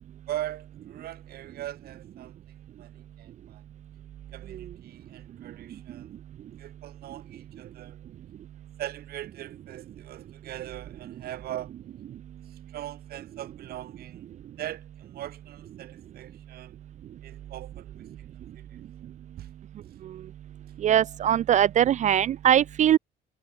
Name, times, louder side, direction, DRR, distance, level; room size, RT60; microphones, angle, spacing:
voice 1, 0.3-2.4 2.8-3.6 4.3-6.1 6.6-8.1 8.8-11.7 12.5-14.3 14.6-16.7 17.2-18.7 19.4-19.5, right 13 dB, 65° right, 2.0 m, -40 dB
voice 2, 20.8-23.0, right 10 dB, 45° right, 0.4 m, -21 dB
cardioid pair, 110°, 17 cm